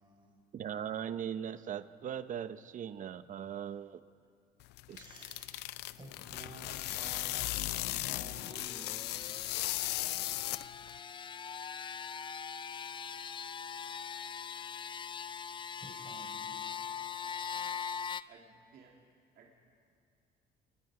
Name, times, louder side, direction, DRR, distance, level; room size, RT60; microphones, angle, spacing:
voice 1, 0.0-0.4 4.9-5.6 5.9-9.3 15.8-16.7, right 2 dB, 30° right, 0 dB, 4.8 m, -52 dB
voice 2, 0.5-4.0 4.9-5.0, right 9 dB, 50° right, 13 dB, 0.8 m, -39 dB
sound 1, 4.6-11.0, left 17 dB, 85° left, 0.5 m, -37 dB
sound 2, 8.3-18.2, left 7 dB, 30° left, 0.5 m, -42 dB
voice 3, 17.2-17.8 18.3-18.9 19.3-19.5, right 5 dB, 65° right, -1 dB, 2.8 m, -60 dB
29.5 x 20.0 x 4.9 m, 2.2 s
cardioid pair, 110°, 17 cm